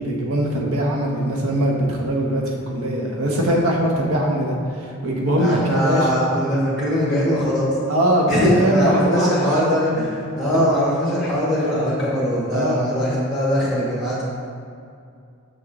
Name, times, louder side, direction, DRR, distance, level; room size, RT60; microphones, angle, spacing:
voice 1, 0.0-6.1 7.9-9.8 10.5-10.7 12.5-13.0, right 1 dB, 75° right, -1 dB, 1.0 m, -21 dB
voice 2, 5.4-7.8 8.3-14.2, equal, ahead, -8 dB, 1.2 m, -21 dB
6.5 x 6.1 x 3.0 m, 2.4 s
head